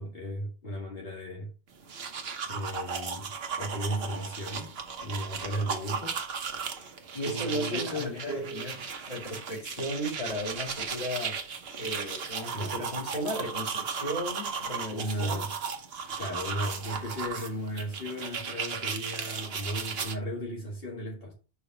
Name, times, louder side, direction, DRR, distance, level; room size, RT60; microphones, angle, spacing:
voice 1, 0.0-1.5 2.5-4.7 5.0-6.2 7.2-8.7 12.5-12.8 14.9-15.5 16.2-21.3, equal, 60° left, 2.1 m, -35 dB
sound 1, 1.7-20.1, right 6 dB, 65° right, 1.1 m, -36 dB
voice 2, 7.1-11.4 11.7-15.4, equal, 35° left, 2.8 m, -35 dB
4.9 x 4.9 x 6.0 m
omnidirectional pair, 1.1 m